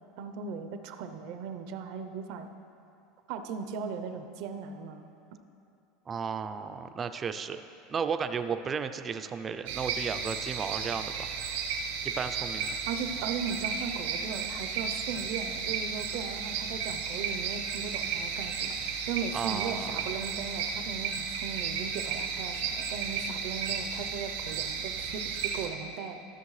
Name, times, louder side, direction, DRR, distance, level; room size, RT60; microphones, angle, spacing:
voice 1, 0.2-2.5 3.3-5.1 12.9-26.2, right 6 dB, 60° right, 8 dB, 0.6 m, -38 dB
voice 2, 6.1-7.6 7.9-11.3 12.0-12.8 18.9-19.0 19.3-19.9, right 6 dB, 25° right, 9 dB, 0.4 m, -34 dB
sound 1, 9.7-25.7, right 6 dB, 85° right, 1.3 m, -34 dB
14.0 x 6.8 x 3.2 m, 2.7 s
supercardioid pair, 140°, 0 cm